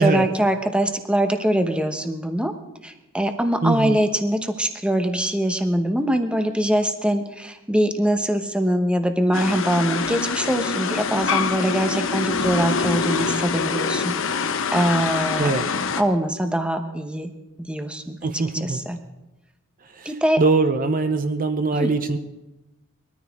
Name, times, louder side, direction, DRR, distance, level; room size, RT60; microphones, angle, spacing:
voice 1, 0.0-2.5 2.8-14.2 14.7-15.5 16.0-17.3 17.7-19.0 20.1-20.4 21.8-21.9, right 1 dB, 5° right, 6 dB, 1.0 m, -23 dB
voice 2, 3.6-4.0 15.4-15.7 18.2-18.8 20.0-22.2, right 3 dB, 40° right, 9 dB, 0.8 m, -22 dB
sound 1, 9.3-16.0, left 5 dB, 65° left, 0.9 m, -25 dB
21.0 x 13.5 x 3.6 m, 0.99 s
head